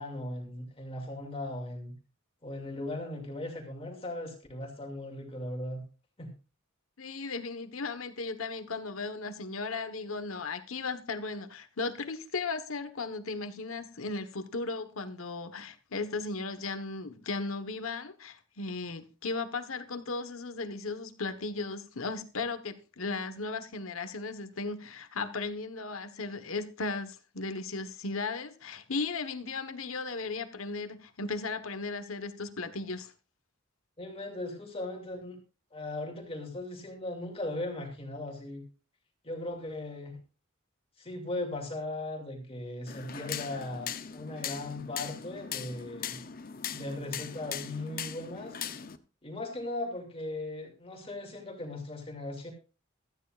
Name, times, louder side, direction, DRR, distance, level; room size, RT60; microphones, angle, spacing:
voice 1, 0.0-1.9 2.4-5.8 6.2-6.3 34.0-35.4 35.7-38.6 39.2-40.2 41.0-46.2 46.7-48.6 49.2-52.5, left 2 dB, 30° left, 2.5 m, -38 dB
voice 2, 7.0-33.1, left 3 dB, 85° left, 1.3 m, -36 dB
sound 1, 42.9-49.0, left 8 dB, 45° left, 0.8 m, -39 dB
15.5 x 13.0 x 2.5 m
head